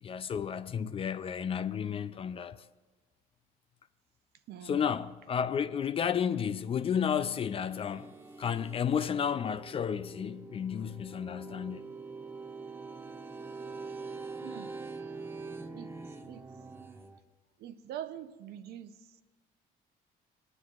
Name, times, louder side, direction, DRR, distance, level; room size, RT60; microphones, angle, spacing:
voice 1, 0.0-2.6 4.6-11.9, left 7 dB, 35° left, 0.4 m, -32 dB
voice 2, 4.5-4.9 14.4-14.8 15.7-16.5 17.6-19.2, right 10 dB, 75° right, 0.6 m, -44 dB
sound 1, 7.2-17.2, right 4 dB, 15° right, 0.6 m, -44 dB
20.0 x 9.7 x 2.4 m
cardioid pair, 110°, 17 cm